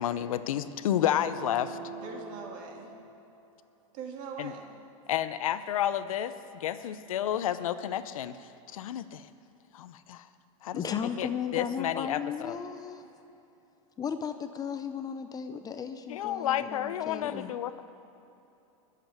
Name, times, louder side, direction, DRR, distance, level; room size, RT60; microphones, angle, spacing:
voice 1, 0.0-1.8 4.4-4.5 5.1-9.3 9.7-10.3 10.6-12.6 16.1-17.9, left 11 dB, 80° left, 13 dB, 0.7 m, -31 dB
sound 1, 1.0-3.6, right 5 dB, 30° right, 3.2 m, -45 dB
voice 2, 2.0-2.9 3.9-4.7, right 5 dB, 50° right, 1 dB, 2.3 m, -41 dB
voice 3, 10.7-13.0 14.0-17.5, left 7 dB, 20° left, 9 dB, 0.6 m, -35 dB
12.0 x 7.6 x 9.4 m, 2.9 s
hypercardioid pair, 120°, 17 cm